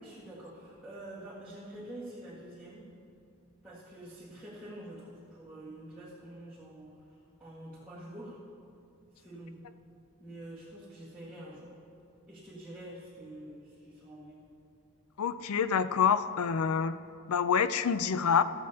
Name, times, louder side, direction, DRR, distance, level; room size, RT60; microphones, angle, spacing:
voice 1, 0.0-2.9 3.6-8.4 9.1-9.6 10.2-11.7 12.3-14.5, right 1 dB, 10° right, -10 dB, 1.6 m, -47 dB
voice 2, 15.2-17.0 17.3-18.4, left 7 dB, 85° left, 12 dB, 0.5 m, -27 dB
14.0 x 13.5 x 2.8 m, 2.5 s
head